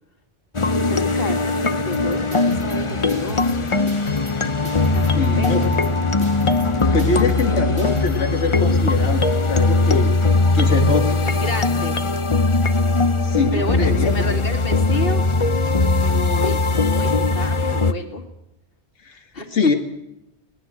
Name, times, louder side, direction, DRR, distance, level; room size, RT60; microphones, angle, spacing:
sound 1, 0.5-17.9, left 3 dB, 30° left, 0.8 m, -20 dB
voice 1, 0.8-3.7 4.9-5.8 11.1-12.0 13.5-15.2 16.0-18.2 19.3-19.8, left 2 dB, 55° left, 4 dB, 2.5 m, -30 dB
sound 2, 1.9-8.2, left 1 dB, 70° right, 2.7 m, -34 dB
voice 2, 5.1-5.7 6.9-10.1 10.5-11.3 13.2-14.3 19.0-19.2 19.5-19.7, left 3 dB, 90° left, 3 dB, 1.9 m, -23 dB
20.0 x 19.0 x 7.5 m, 0.83 s
omnidirectional pair, 1.1 m